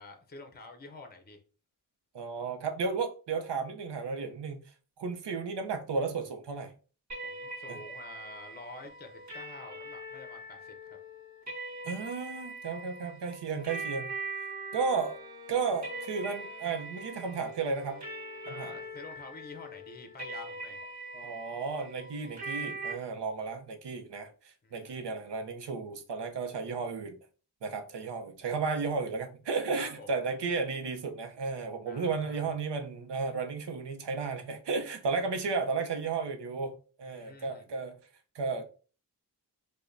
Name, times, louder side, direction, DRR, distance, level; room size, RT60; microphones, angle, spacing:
voice 1, 0.0-1.4 7.2-11.0 18.4-20.8 24.6-25.0 29.8-30.1 31.9-32.5 37.0-37.7, left 3 dB, 25° left, 0.6 m, -48 dB
voice 2, 2.1-4.6 5.0-6.7 7.7-7.8 11.8-14.1 14.7-15.2 15.5-18.0 18.5-18.7 21.1-27.2 27.6-38.0 38.3-38.6, right 4 dB, 85° right, 0.7 m, -33 dB
sound 1, 7.1-22.9, right 2 dB, 45° right, 1.4 m, -42 dB
Bowed string instrument, 14.9-19.3, equal, 65° right, 1.2 m, -50 dB
4.9 x 2.2 x 2.6 m
wide cardioid pair, 115°, 40 cm